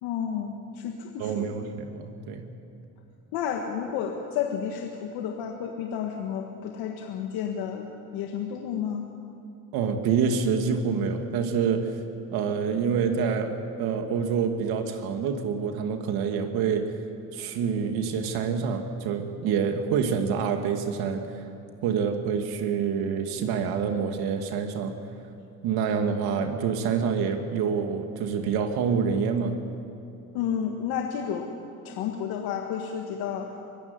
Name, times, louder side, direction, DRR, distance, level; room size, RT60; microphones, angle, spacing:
voice 1, 0.0-1.7 3.3-9.1 30.3-31.5 31.8-33.5, left 8 dB, 90° left, 2 dB, 1.8 m, -31 dB
voice 2, 1.2-2.5 9.7-12.0 12.3-16.9 17.3-21.5 21.8-24.9 25.6-29.6, right 6 dB, 80° right, 5 dB, 2.4 m, -27 dB
25.0 x 15.5 x 9.7 m, 2.8 s
supercardioid pair, 85°, 36 cm